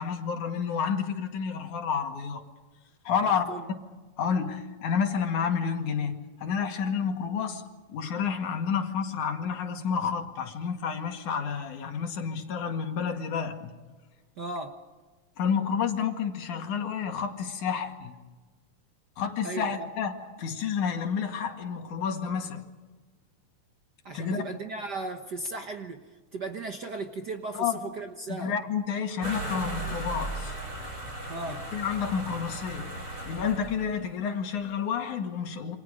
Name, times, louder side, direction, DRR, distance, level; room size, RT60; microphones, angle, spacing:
voice 1, 0.0-2.4 3.0-3.4 4.2-7.6 7.9-13.7 15.4-18.1 19.2-22.6 24.1-24.4 27.5-27.8 28.3-30.5 31.7-33.0 33.3-35.8, left 6 dB, 90° left, 4 dB, 3.5 m, -30 dB
voice 2, 3.2-3.7 14.4-14.8 19.4-19.9 24.0-28.5 31.3-31.7, right 3 dB, 50° right, 5 dB, 1.2 m, -36 dB
sound 1, 29.2-34.0, right 1 dB, 30° right, 5.5 m, -36 dB
28.5 x 26.5 x 5.2 m, 1.3 s
omnidirectional pair, 3.4 m